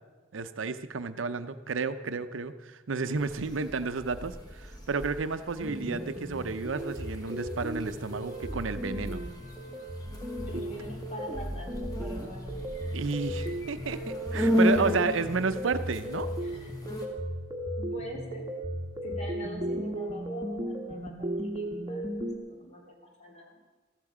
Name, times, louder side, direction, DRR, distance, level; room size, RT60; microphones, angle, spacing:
voice 1, 0.3-9.2 10.5-10.6 12.9-14.0 14.3-16.3, right 4 dB, 85° right, 11 dB, 0.7 m, -31 dB
sound 1, 3.2-17.1, left 1 dB, 20° left, 2.0 m, -35 dB
sound 2, 5.6-22.4, equal, 20° right, 1.2 m, -36 dB
Trumpet, 8.3-10.5, left 1 dB, 75° left, 5.7 m, -56 dB
voice 2, 10.5-12.6 14.4-15.0 16.4-16.8 17.8-18.5 19.0-23.6, equal, 35° left, 0 dB, 2.8 m, -43 dB
14.0 x 14.0 x 4.9 m, 1.3 s
head